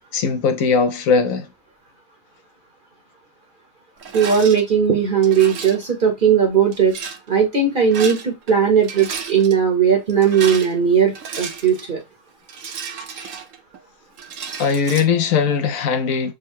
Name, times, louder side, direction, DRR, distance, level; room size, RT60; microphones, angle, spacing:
voice 1, 0.1-1.5 13.2-13.3 14.6-16.3, left 5 dB, 70° left, 1.0 m, -19 dB
Rattle, 4.0-4.6 5.2-5.9 6.7-7.2 7.8-8.5 8.8-9.5 10.1-11.9 12.5-13.8 14.2-15.0, right 6 dB, 65° right, 1.0 m, -32 dB
voice 2, 4.1-6.9 7.3-12.0, right 7 dB, 40° right, 0.9 m, -17 dB
3.7 x 2.1 x 4.3 m
omnidirectional pair, 1.5 m